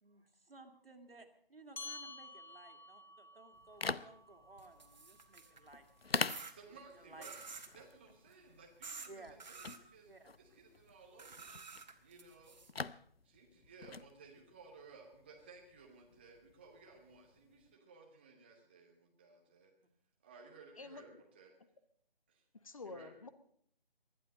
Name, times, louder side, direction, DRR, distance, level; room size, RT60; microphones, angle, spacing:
voice 1, 0.0-5.9 6.1-7.3 9.1-9.4 10.1-10.3, right 2 dB, 75° right, 5 dB, 2.5 m, -58 dB
sound 1, 1.8-6.6, left 3 dB, 50° left, 2.2 m, -53 dB
sound 2, 3.5-17.7, left 4 dB, 90° left, 0.7 m, -46 dB
sound 3, 4.6-5.7 6.3-6.5 7.2-7.7 8.8-9.1 9.4-9.8 11.2-12.7, right 4 dB, 50° right, 1.7 m, -50 dB
voice 2, 6.5-7.4 7.7-10.1 10.4-11.5 12.0-12.6 13.2-19.7 20.2-21.5 22.3-22.4 22.8-23.1, right 4 dB, 10° right, 1 dB, 0.8 m, -58 dB
voice 3, 22.6-23.3, left 3 dB, 35° left, 12 dB, 1.0 m, -48 dB
20.0 x 12.0 x 5.2 m, 0.64 s
figure-of-eight pair, 155°, 29 cm